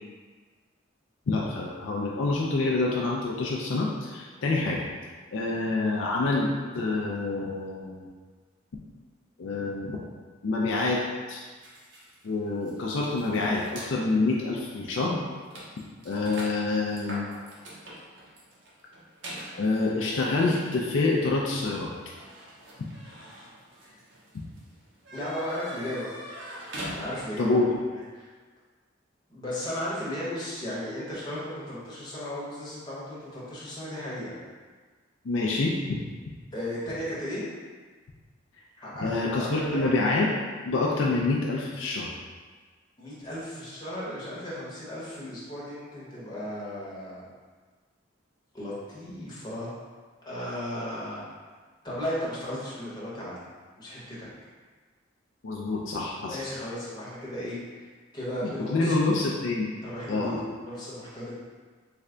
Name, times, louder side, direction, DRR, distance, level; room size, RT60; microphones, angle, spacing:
voice 1, 1.3-4.9 5.3-6.5 6.7-8.1 9.4-9.9 10.4-11.0 11.3-11.4 12.2-15.2 16.1-17.3 19.6-21.9 27.4-27.6 35.2-35.7 39.0-40.3 40.6-42.1 55.4-56.4 58.4-59.7 60.1-60.4, left 3 dB, 70° left, -3 dB, 0.4 m, -27 dB
sound 1, 11.6-13.9 14.6-14.8 15.0-27.5, equal, 65° right, 0.8 m, -44 dB
voice 2, 25.1-26.1 26.9-27.7 27.9-28.3 29.3-34.4 36.5-37.4 38.8-39.9 43.0-47.2 48.5-49.7 50.2-51.2 51.8-53.4 53.8-54.3 56.3-59.3 59.8-61.3, left 1 dB, 20° left, -8 dB, 1.0 m, -35 dB
3.3 x 2.2 x 3.7 m, 1.5 s
head